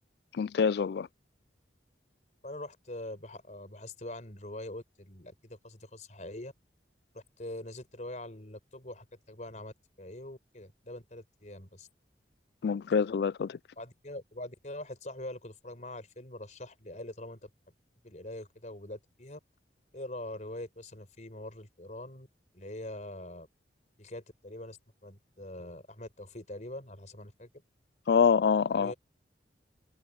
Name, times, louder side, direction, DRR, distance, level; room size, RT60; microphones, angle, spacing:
voice 1, 0.3-1.1 12.6-13.6 28.1-28.9, left 6 dB, 60° left, 0.3 m, -26 dB
voice 2, 2.4-6.5 7.1-11.9 13.8-17.7 18.0-19.4 19.9-22.3 22.5-23.5 24.0-24.8 25.0-27.5 28.7-28.9, left 1 dB, 40° left, 5.0 m, -43 dB
head